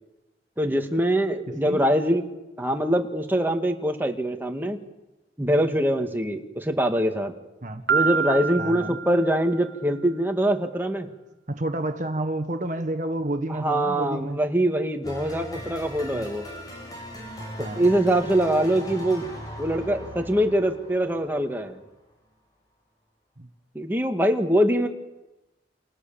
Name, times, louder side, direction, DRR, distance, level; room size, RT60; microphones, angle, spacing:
voice 1, 0.6-2.3 2.6-4.8 5.4-7.3 7.9-11.1 13.5-16.5 17.8-19.3 19.6-21.8 23.7-24.9, right 1 dB, 10° right, 3 dB, 2.2 m, -23 dB
voice 2, 1.5-1.8 7.6-7.8 8.6-9.0 11.5-14.4 16.1-16.3 17.6-17.9 23.4-23.5, right 1 dB, 45° right, 7 dB, 1.5 m, -30 dB
Piano, 7.9-9.8, right 7 dB, 65° right, 0.9 m, -27 dB
sound 1, 15.0-21.9, left 1 dB, 20° left, 6.3 m, -39 dB
28.5 x 27.5 x 7.2 m, 0.99 s
head